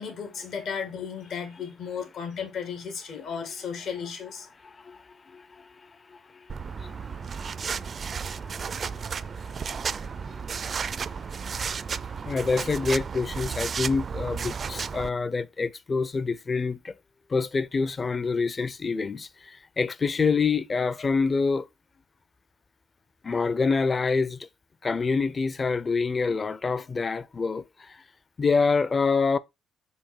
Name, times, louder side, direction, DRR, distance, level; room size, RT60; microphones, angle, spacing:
voice 1, 0.0-4.5, left 6 dB, 70° left, 2.3 m, -34 dB
voice 2, 4.6-5.7 6.1-7.9 8.3-16.9 17.3-21.7 23.2-24.4 24.8-28.0 28.4-29.4, left 4 dB, 35° left, 0.6 m, -28 dB
sound 1, 6.5-15.1, right 6 dB, 45° right, 0.4 m, -33 dB
5.6 x 4.4 x 4.4 m
cardioid pair, 90°, 0 cm